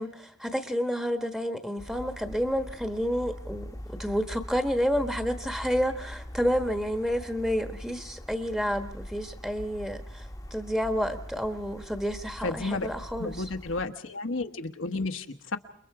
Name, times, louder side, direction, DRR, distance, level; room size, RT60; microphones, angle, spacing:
voice 1, 0.0-3.7 4.0-10.3 10.5-13.4, equal, 5° right, 7 dB, 1.3 m, -29 dB
sound 1, 1.8-13.8, equal, 15° left, 1.1 m, -42 dB
voice 2, 12.4-12.9 13.2-15.6, left 3 dB, 70° left, 5 dB, 1.2 m, -32 dB
29.0 x 22.0 x 4.8 m, 0.64 s
head